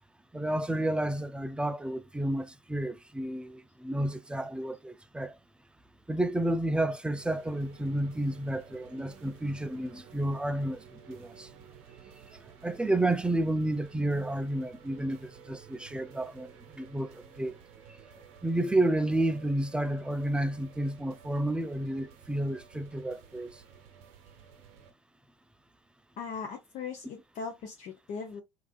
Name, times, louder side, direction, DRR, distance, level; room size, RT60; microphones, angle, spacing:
voice 1, 0.3-5.3 6.1-11.5 12.6-16.5 16.8-17.6 18.4-23.6, right 1 dB, 5° right, 0.3 m, -31 dB
sound 1, 7.2-24.9, right 8 dB, 60° right, 0.6 m, -54 dB
voice 2, 26.2-28.4, left 5 dB, 45° left, 0.6 m, -39 dB
3.3 x 2.5 x 2.2 m
hypercardioid pair, 70°, 17 cm